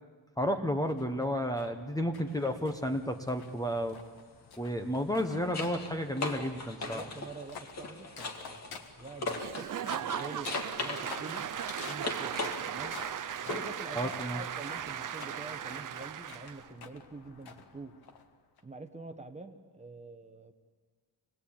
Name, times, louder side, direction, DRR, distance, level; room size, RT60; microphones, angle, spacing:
voice 1, 0.4-4.0 4.6-7.0 13.9-14.4, equal, 10° left, 5 dB, 1.0 m, -32 dB
sound 1, 0.9-18.6, left 6 dB, 60° left, 1.7 m, -50 dB
sound 2, 2.3-2.5 4.8-9.7 10.1-13.8 16.5-16.6, left 3 dB, 40° left, 2.1 m, -40 dB
voice 2, 6.8-9.7 10.0-11.5 11.9-13.0 13.4-17.9 18.6-20.5, right 3 dB, 15° right, 6 dB, 1.1 m, -46 dB
Applause / Crowd, 9.4-16.7, right 9 dB, 50° right, 0.7 m, -37 dB
26.0 x 19.5 x 8.7 m, 1.4 s
wide cardioid pair, 180°, 41 cm